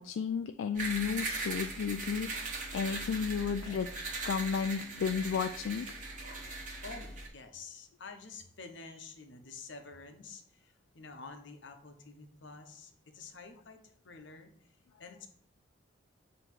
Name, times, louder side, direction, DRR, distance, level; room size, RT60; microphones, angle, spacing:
voice 1, 0.0-3.9 4.2-6.0, left 6 dB, 85° left, 8 dB, 0.3 m, -33 dB
sound 1, 0.7-7.3, right 3 dB, 40° right, 1.2 m, -39 dB
voice 2, 6.8-14.7 15.0-15.3, left 4 dB, 70° left, 6 dB, 0.9 m, -49 dB
7.7 x 3.0 x 4.5 m, 0.62 s
head